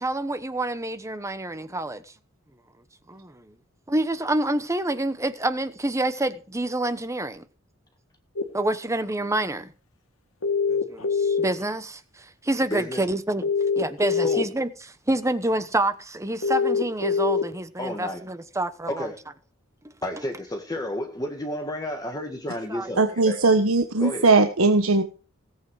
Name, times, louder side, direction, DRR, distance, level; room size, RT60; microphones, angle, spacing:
voice 1, 0.0-2.1 3.1-3.5 3.9-7.4 8.5-9.7 10.7-13.5 13.8-19.1 22.7-23.2, right 1 dB, 15° right, 1.0 m, -28 dB
sound 1, 8.4-8.5 10.4-11.6 13.4-14.4 16.4-17.4, left 5 dB, 90° left, 1.9 m, -23 dB
voice 2, 12.7-13.0 14.2-14.4 17.8-18.2 18.9-19.2 20.0-23.5 24.0-24.3, left 1 dB, 20° left, 1.8 m, -31 dB
voice 3, 23.0-25.0, right 3 dB, 85° right, 1.2 m, -19 dB
17.5 x 8.5 x 4.8 m
head